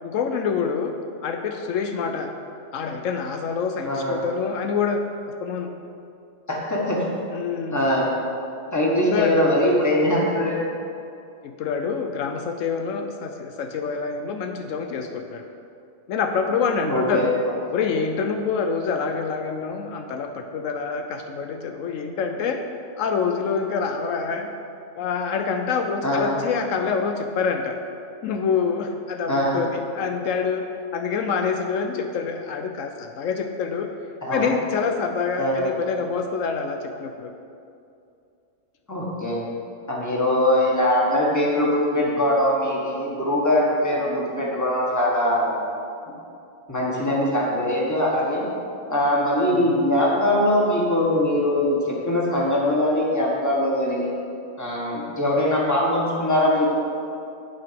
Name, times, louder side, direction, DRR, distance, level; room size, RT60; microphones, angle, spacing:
voice 1, 0.0-0.9 1.2-2.3 2.7-5.0 5.3-5.7 7.3-7.8 9.1-9.3 11.4-15.4 16.1-17.3 17.7-22.6 23.0-24.5 25.0-27.8 28.2-30.6 30.9-33.9 34.3-37.3 40.3-40.7 49.5-49.8, left 5 dB, 80° left, 5 dB, 1.0 m, -26 dB
voice 2, 3.8-4.3 6.5-7.0 7.7-8.1 8.7-10.6 16.9-17.3 26.0-26.4 29.3-29.6 34.2-34.4 35.4-35.7 38.9-39.4 39.9-45.6 46.7-48.4 48.9-54.1 54.6-56.7, left 1 dB, 15° left, -4 dB, 1.5 m, -22 dB
8.7 x 4.7 x 7.5 m, 2.5 s
omnidirectional pair, 1.3 m